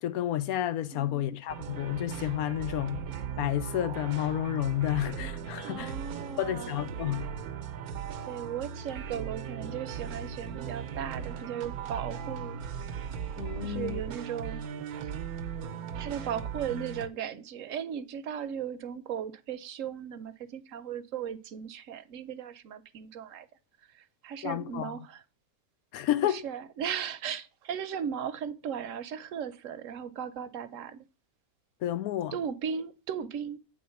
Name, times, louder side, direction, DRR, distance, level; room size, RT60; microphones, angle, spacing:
voice 1, 0.0-3.0 3.4-5.9 6.4-7.3 13.4-14.0 24.4-25.0 25.9-26.4 31.8-32.3, left 12 dB, 90° left, 1.1 m, -30 dB
voice 2, 0.9-1.4 5.6-6.8 8.3-12.7 13.6-14.6 15.0-15.1 16.0-23.5 23.8-25.2 26.2-31.0 32.3-33.6, right 8 dB, 70° right, 1.0 m, -37 dB
sound 1, 1.5-17.1, right 7 dB, 90° right, 1.2 m, -38 dB
8.6 x 3.6 x 5.6 m
omnidirectional pair, 1.5 m